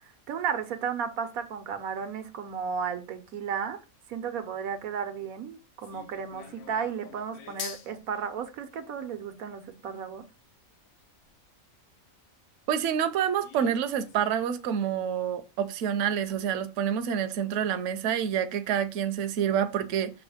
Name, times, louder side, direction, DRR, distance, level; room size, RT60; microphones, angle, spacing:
voice 1, 0.3-3.8 4.1-10.2, right 7 dB, 90° right, 1.3 m, -34 dB
sound 1, 5.8-11.7 12.1-12.2 12.7-12.8 13.4-14.6 14.9-15.0 15.3-15.4 15.9-16.0 16.2-16.4, left 7 dB, 75° left, 1.2 m, -47 dB
voice 2, 12.7-20.1, right 8 dB, 65° right, 0.9 m, -28 dB
6.3 x 3.0 x 4.9 m
omnidirectional pair, 1.4 m